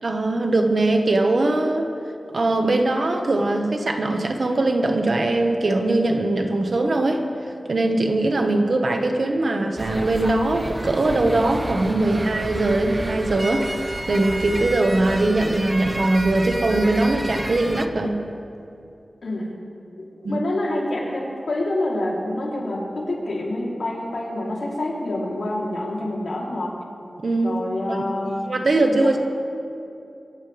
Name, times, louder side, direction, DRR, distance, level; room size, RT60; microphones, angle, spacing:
voice 1, 0.0-1.9 2.3-7.2 7.7-18.2 20.2-20.4 27.2-27.6 27.9-29.2, right 2 dB, 60° right, 4 dB, 1.5 m, -21 dB
sound 1, 9.8-17.9, right 1 dB, 20° right, 0.8 m, -30 dB
voice 2, 19.2-19.5 20.0-26.8 27.4-29.1, left 1 dB, 85° left, -4 dB, 3.6 m, -27 dB
25.5 x 14.0 x 3.6 m, 2.6 s
wide cardioid pair, 100°, 0 cm